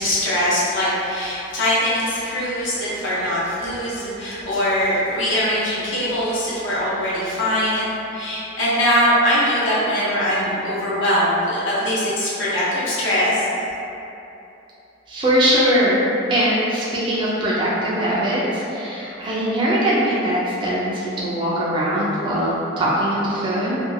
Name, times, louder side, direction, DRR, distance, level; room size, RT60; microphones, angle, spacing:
voice 1, 0.0-13.4, equal, 70° left, -9 dB, 0.8 m, -22 dB
voice 2, 15.1-16.0 16.3-23.8, equal, 25° right, -8 dB, 0.4 m, -21 dB
2.6 x 2.2 x 2.6 m, 2.9 s
head